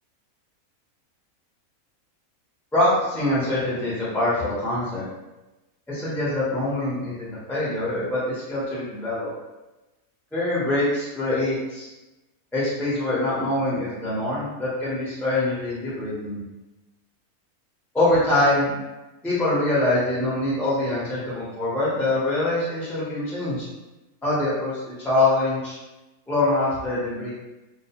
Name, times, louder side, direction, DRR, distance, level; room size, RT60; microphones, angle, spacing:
voice 1, 2.7-5.0 5.9-9.3 10.3-11.9 12.5-16.4 17.9-18.7 19.2-23.7 24.2-25.8 26.3-27.4, left 2 dB, 5° left, -8 dB, 0.4 m, -24 dB
2.3 x 2.2 x 2.8 m, 1.0 s
omnidirectional pair, 1.5 m